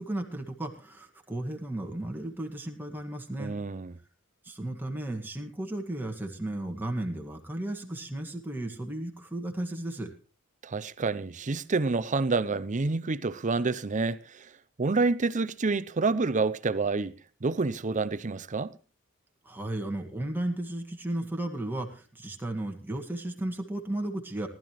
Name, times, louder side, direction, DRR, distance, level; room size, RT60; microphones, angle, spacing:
voice 1, 0.0-3.6 4.4-10.1 19.4-24.5, right 1 dB, 10° right, 1.9 m, -34 dB
voice 2, 3.4-3.9 10.6-14.5 14.8-17.2 17.4-18.7, right 3 dB, 35° right, 0.6 m, -28 dB
19.0 x 12.0 x 3.1 m
head